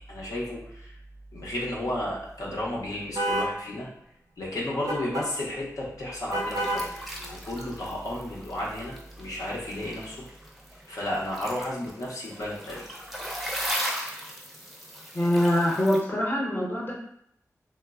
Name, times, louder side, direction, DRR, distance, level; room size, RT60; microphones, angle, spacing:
voice 1, 0.1-0.9 1.3-3.9 4.4-6.9 7.2-10.2 10.9-12.9, left 1 dB, 80° left, -5 dB, 0.6 m, -33 dB
sound 1, 3.2-3.5 4.9-5.3 6.3-6.9, right 1 dB, 80° right, 0.4 m, -28 dB
sound 2, 6.3-16.0, equal, ahead, 0.5 m, -38 dB
voice 2, 15.1-16.9, left 1 dB, 35° left, -5 dB, 0.7 m, -24 dB
3.0 x 2.0 x 2.3 m, 0.71 s
wide cardioid pair, 90°, 6 cm